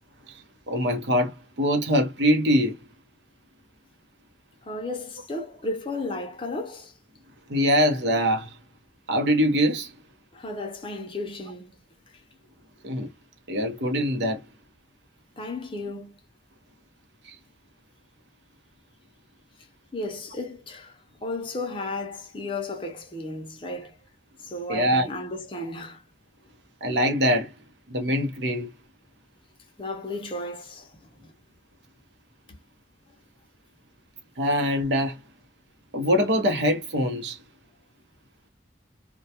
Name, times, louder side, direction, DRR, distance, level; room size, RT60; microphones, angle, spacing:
voice 1, 0.7-2.8 7.5-8.6 9.1-9.9 12.8-13.1 13.5-14.4 17.2-17.4 24.7-25.1 26.8-27.5 27.9-28.7 34.4-35.2 35.9-37.4, equal, 75° right, 0.8 m, -23 dB
voice 2, 4.6-7.0 10.3-11.8 15.4-16.1 19.9-24.0 24.4-26.0 29.8-31.3 32.5-32.6, left 2 dB, 30° left, 0.6 m, -34 dB
2.2 x 2.2 x 2.7 m
head